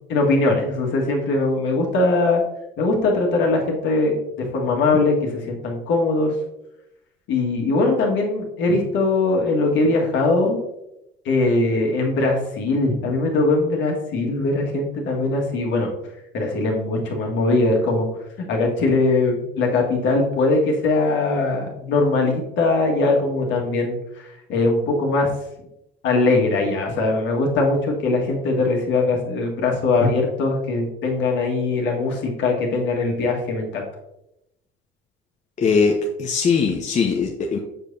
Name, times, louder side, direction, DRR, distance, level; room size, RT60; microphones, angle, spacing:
voice 1, 0.1-2.4 2.8-4.2 4.5-6.3 7.3-10.6 11.3-15.9 16.3-18.1 18.4-25.3 26.0-33.8, left 3 dB, 65° left, 0 dB, 1.8 m, -21 dB
voice 2, 35.6-37.6, left 5 dB, 35° left, 1 dB, 0.9 m, -20 dB
7.2 x 5.0 x 2.7 m, 0.85 s
hypercardioid pair, 75°, 21 cm